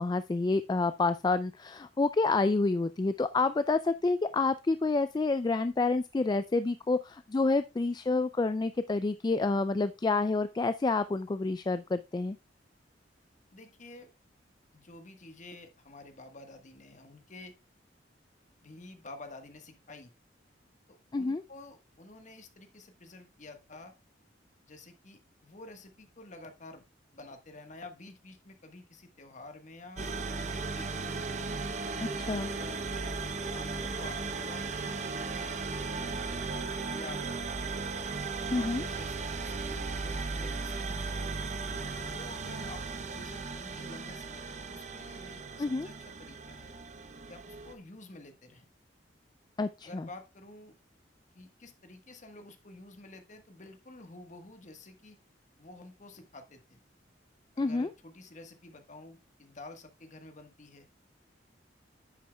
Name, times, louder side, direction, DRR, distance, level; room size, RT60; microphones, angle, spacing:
voice 1, 0.0-12.4 21.1-21.4 32.2-32.5 38.5-38.8 45.6-45.9 49.6-50.1 57.6-57.9, left 3 dB, 25° left, 12 dB, 0.3 m, -28 dB
voice 2, 13.5-14.1 14.7-17.5 18.6-20.1 20.9-23.9 24.6-26.8 27.1-31.1 32.3-35.6 36.0-37.4 38.3-41.1 42.0-46.7 47.3-48.7 49.8-50.8 51.3-55.2 55.6-56.8 57.5-61.0, left 2 dB, 40° left, 6 dB, 1.4 m, -50 dB
sound 1, 30.0-47.7, right 4 dB, 40° right, 0.7 m, -36 dB
9.9 x 8.4 x 2.3 m, 0.27 s
head